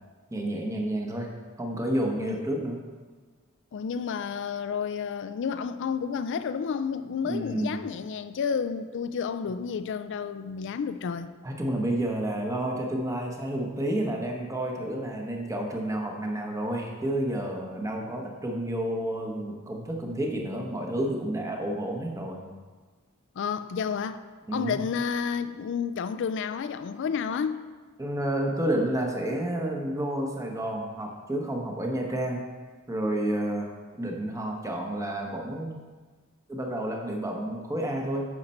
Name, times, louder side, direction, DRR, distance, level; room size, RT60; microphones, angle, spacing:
voice 1, 0.3-1.3 1.6-2.8 7.2-7.8 11.4-22.5 24.5-24.8 28.0-32.4 32.9-33.7 34.0-35.8 36.5-38.2, right 1 dB, 15° right, 1 dB, 1.0 m, -30 dB
voice 2, 3.7-11.3 23.4-24.2 24.5-27.6, left 6 dB, 55° left, 12 dB, 0.4 m, -30 dB
9.7 x 6.6 x 4.3 m, 1.4 s
head